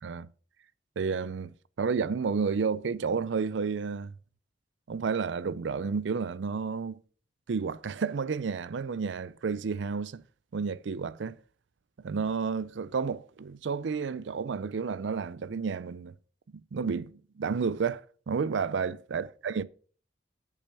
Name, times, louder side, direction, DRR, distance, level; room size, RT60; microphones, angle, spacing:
voice 1, 1.0-4.1 4.9-7.0 7.5-10.2 10.5-11.4 12.0-16.1 16.5-19.6, right 5 dB, 75° right, 0.4 m, -31 dB
8.4 x 6.8 x 5.4 m
head